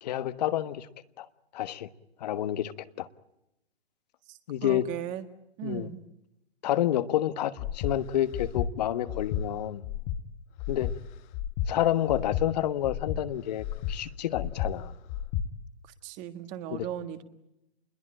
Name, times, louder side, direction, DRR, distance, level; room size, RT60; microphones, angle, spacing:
voice 1, 0.0-0.9 1.2-1.3 1.5-1.9 2.2-2.7 3.0-3.1 4.5-4.9 5.6-5.9 6.6-9.8 10.7-10.9 11.7-14.9 16.7-16.9, left 12 dB, 40° left, 13 dB, 1.3 m, -29 dB
voice 2, 4.3-5.2 5.6-6.0 16.0-17.2, right 11 dB, 25° right, 9 dB, 1.8 m, -37 dB
Breathing, 7.6-7.9 8.3-8.7 9.1-9.4 9.8-10.2 10.6-10.9 11.3-11.7 12.1-12.4 12.8-13.2 13.6-13.9 14.3-14.7 15.1-15.4, left 10 dB, 20° left, 1.2 m, -31 dB
29.0 x 21.5 x 8.9 m, 0.88 s
hypercardioid pair, 145°, 32 cm